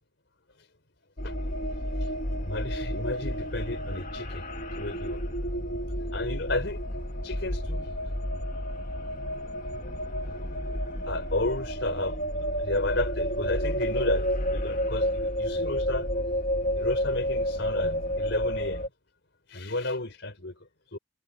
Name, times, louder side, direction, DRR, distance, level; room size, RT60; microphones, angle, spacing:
sound 1, 1.2-18.9, equal, 45° left, 2.1 m, -30 dB
voice 1, 2.4-4.4 4.7-5.2 5.9-6.8 7.2-7.9 9.8-10.4 10.7-10.8 11.1-16.4 16.8-18.9 19.5-21.0, left 2 dB, 65° left, 4.4 m, -33 dB
head